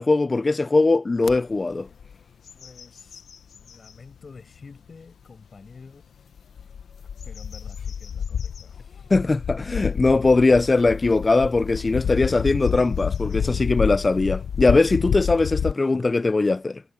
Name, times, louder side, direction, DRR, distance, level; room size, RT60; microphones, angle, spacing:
voice 1, 0.0-1.9 9.1-16.8, left 3 dB, 35° left, 0.4 m, -20 dB
sound 1, 1.2-1.4 1.9-2.1 2.5-4.0 4.6-4.7 6.4-15.7, left 7 dB, 85° left, 0.8 m, -29 dB
voice 2, 2.5-3.2 3.6-6.1 7.2-9.1, left 4 dB, 55° left, 6.3 m, -48 dB
cardioid pair, 70°, 0 cm